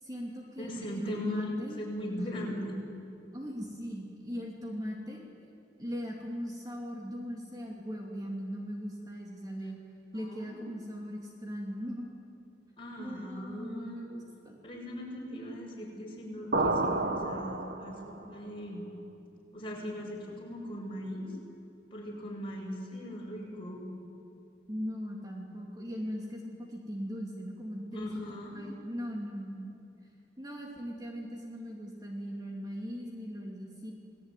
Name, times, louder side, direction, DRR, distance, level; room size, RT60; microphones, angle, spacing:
voice 1, 0.0-1.8 2.2-2.3 3.3-5.2 5.8-9.8 10.1-12.1 13.0-14.6 24.7-28.2 28.5-29.8 30.4-33.9, equal, 20° right, -2 dB, 3.0 m, -39 dB
voice 2, 0.6-1.5 1.8-2.8 10.1-10.6 12.8-14.0 14.6-18.9 19.5-21.3 21.9-23.9 27.9-28.6, equal, 30° left, -2 dB, 6.9 m, -39 dB
sound 1, 16.5-18.2, right 2 dB, 60° right, 1.6 m, -30 dB
28.5 x 20.0 x 9.4 m, 2.6 s
head